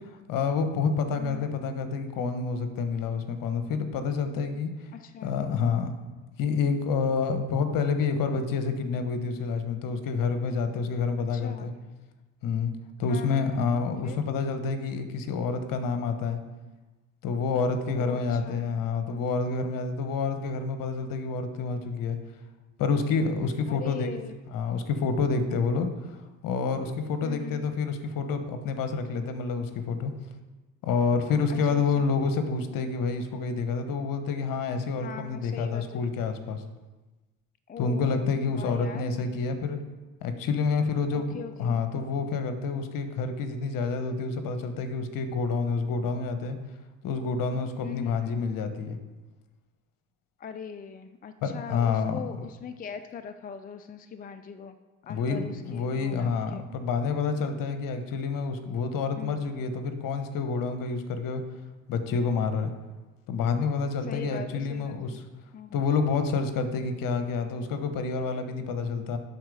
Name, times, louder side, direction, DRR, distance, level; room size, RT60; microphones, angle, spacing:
voice 1, 0.3-4.7 5.2-5.9 6.4-11.7 12.4-12.7 13.0-16.4 17.2-22.2 22.8-24.1 24.5-25.9 26.4-30.1 30.8-36.6 37.8-39.8 40.2-46.6 47.0-49.0 51.4-52.2 55.1-61.4 61.9-62.7 63.3-65.2 65.7-69.2, left 5 dB, 60° left, 8 dB, 1.1 m, -28 dB
voice 2, 1.2-1.6 5.0-5.3 11.2-11.7 13.1-13.7 14.0-14.2 18.0-18.7 23.7-24.4 27.2-27.7 31.5-32.2 35.0-36.1 37.7-39.0 41.1-41.8 47.8-48.4 50.4-54.7 55.1-56.6 59.2-59.4 64.1-65.2 65.5-65.8, left 7 dB, 25° left, 10 dB, 0.5 m, -41 dB
10.5 x 4.2 x 4.9 m, 1.2 s
hypercardioid pair, 60°, 38 cm